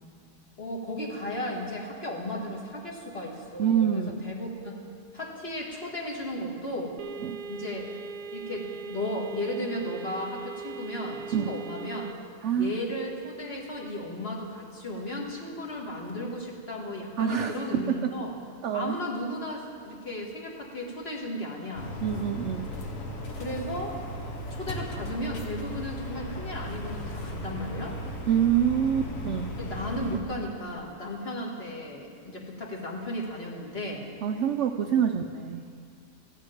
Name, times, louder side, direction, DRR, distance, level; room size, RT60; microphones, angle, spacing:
voice 1, 0.6-4.8 5.1-7.0 7.5-7.9 8.3-12.1 12.5-18.3 18.7-21.9 23.4-24.0 24.5-28.0 29.6-34.1 34.8-35.1, left 1 dB, 40° left, -2 dB, 1.9 m, -35 dB
voice 2, 3.6-4.3 7.2-7.4 11.3-11.5 12.4-12.8 17.2-18.1 18.6-19.0 22.0-22.7 28.3-29.5 34.2-35.7, right 8 dB, 70° right, 7 dB, 0.7 m, -26 dB
sound 1, 7.0-12.1, right 5 dB, 90° right, 1.2 m, -40 dB
sound 2, 21.7-30.2, equal, 60° left, 1.6 m, -36 dB
14.5 x 6.7 x 9.1 m, 2.3 s
omnidirectional pair, 1.7 m